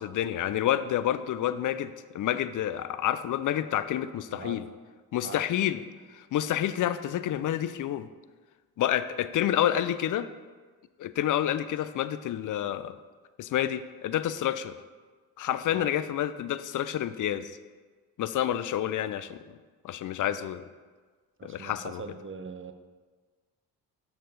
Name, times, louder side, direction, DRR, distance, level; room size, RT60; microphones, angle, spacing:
voice 1, 0.0-4.6 5.1-5.8 6.1-8.1 8.8-10.3 11.0-12.9 13.4-14.8 15.4-17.6 18.2-19.6 19.8-20.6 21.4-22.0, left 11 dB, 45° left, 14 dB, 0.5 m, -29 dB
voice 2, 4.3-4.6 5.2-5.4 15.7-15.9 21.4-22.7, right 5 dB, 25° right, 8 dB, 0.7 m, -41 dB
6.7 x 6.5 x 4.0 m, 1.4 s
hypercardioid pair, 50°, 45 cm